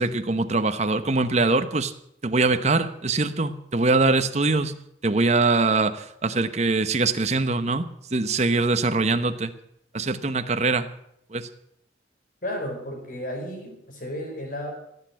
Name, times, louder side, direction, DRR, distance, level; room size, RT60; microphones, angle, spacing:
voice 1, 0.0-1.9 2.2-4.8 5.0-7.8 8.1-9.5 9.9-10.9 11.3-11.5, right 3 dB, 40° right, 10 dB, 1.0 m, -23 dB
voice 2, 12.4-14.7, left 1 dB, 50° left, 2 dB, 4.8 m, -33 dB
16.0 x 8.5 x 9.1 m, 0.75 s
head